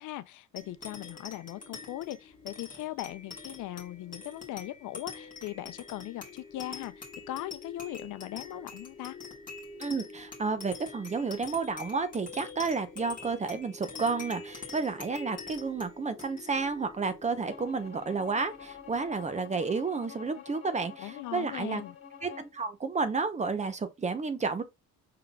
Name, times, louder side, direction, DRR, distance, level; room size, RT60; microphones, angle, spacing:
voice 1, 0.0-6.9 7.3-9.2 20.4-20.5 21.0-22.0, left 15 dB, 75° left, 0.6 m, -39 dB
sound 1, 0.6-19.4, left 4 dB, 25° left, 1.5 m, -46 dB
voice 2, 9.8-21.8 22.2-24.6, right 4 dB, 20° right, 0.7 m, -31 dB
Bowed string instrument, 17.5-22.6, left 8 dB, 45° left, 2.2 m, -48 dB
5.6 x 3.8 x 2.3 m
cardioid pair, 125°, 31 cm